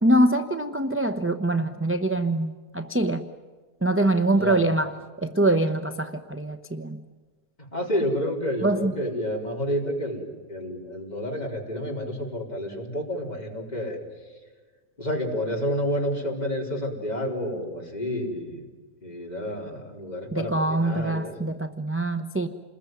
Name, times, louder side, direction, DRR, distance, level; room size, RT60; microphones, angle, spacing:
voice 1, 0.0-3.2 3.8-5.0 5.2-7.0 8.6-8.9 20.3-22.5, right 1 dB, 15° right, 7 dB, 0.5 m, -24 dB
voice 2, 4.3-4.9 7.7-14.0 15.0-18.6 19.0-21.3, equal, 25° left, -1 dB, 4.4 m, -30 dB
28.0 x 21.0 x 9.3 m, 1.4 s
omnidirectional pair, 1.7 m